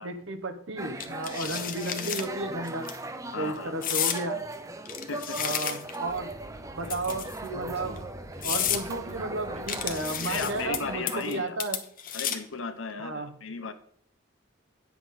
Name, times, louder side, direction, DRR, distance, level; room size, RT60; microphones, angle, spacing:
voice 1, 0.0-2.9 3.4-4.4 5.4-6.4 6.8-8.1 8.4-11.8 13.0-13.3, right 2 dB, 65° right, 7 dB, 1.1 m, -33 dB
sound 1, 0.8-11.4, right 2 dB, 15° right, 0.6 m, -39 dB
sound 2, 1.0-2.3 2.7-2.9 3.8-4.2 4.9-6.0 6.9-7.5 8.0-8.1 8.4-8.8 9.7-10.8 11.1-11.4 11.6-12.5, left 9 dB, 45° left, 0.9 m, -31 dB
voice 2, 3.3-3.9 5.1-5.4 10.3-11.6 12.1-13.7, left 4 dB, 70° left, 9 dB, 1.0 m, -35 dB
Speech, 6.1-11.0, equal, 30° right, 1.5 m, -45 dB
9.8 x 7.0 x 4.2 m, 0.66 s
head